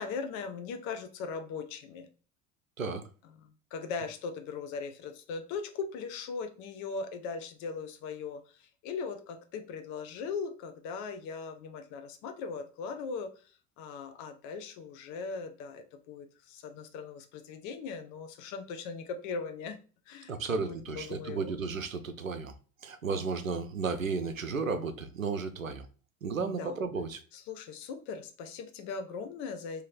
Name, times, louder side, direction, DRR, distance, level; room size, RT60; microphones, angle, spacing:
voice 1, 0.0-2.1 3.4-13.3 13.8-19.8 20.1-21.5 26.4-26.8 27.3-29.8, left 5 dB, 50° left, 0.8 m, -39 dB
voice 2, 2.8-3.1 20.3-22.5 22.8-25.9 26.2-27.2, right 4 dB, 90° right, 0.5 m, -33 dB
3.1 x 2.8 x 3.9 m
figure-of-eight pair, 65°, 39 cm